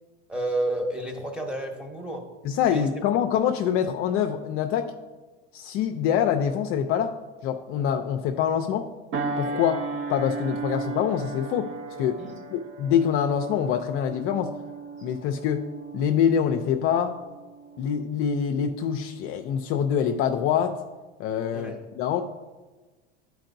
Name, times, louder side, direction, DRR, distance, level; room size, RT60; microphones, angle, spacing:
voice 1, 0.3-2.2 2.7-2.9 12.2-12.4 21.5-21.8, right 1 dB, 5° right, 2 dB, 1.0 m, -30 dB
voice 2, 2.4-4.9 5.5-7.1 7.4-8.9 9.4-9.8 10.1-11.7 12.0-12.2 12.5-14.5 15.0-15.6 15.9-17.1 17.8-20.8 21.2-22.2, left 8 dB, 45° left, 5 dB, 0.4 m, -25 dB
sound 1, 9.1-18.0 18.4-18.7, right 4 dB, 40° right, 0.7 m, -36 dB
10.5 x 4.6 x 2.6 m, 1.3 s
supercardioid pair, 115°, 32 cm